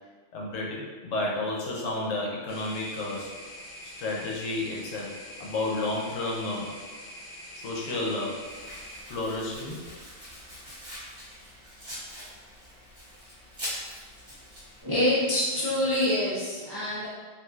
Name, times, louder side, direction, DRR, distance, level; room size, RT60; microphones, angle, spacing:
voice 1, 0.3-3.3 3.8-6.7 7.5-8.5 9.1-9.9, left 2 dB, 80° left, -2 dB, 1.0 m, -31 dB
sound 1, 2.5-9.0, equal, 55° left, 0.7 m, -44 dB
Domestic sounds home sounds, 8.4-14.8, equal, 25° right, 0.9 m, -42 dB
voice 2, 14.8-17.1, left 1 dB, 40° right, -9 dB, 0.3 m, -26 dB
3.1 x 2.6 x 2.3 m, 1.4 s
omnidirectional pair, 1.3 m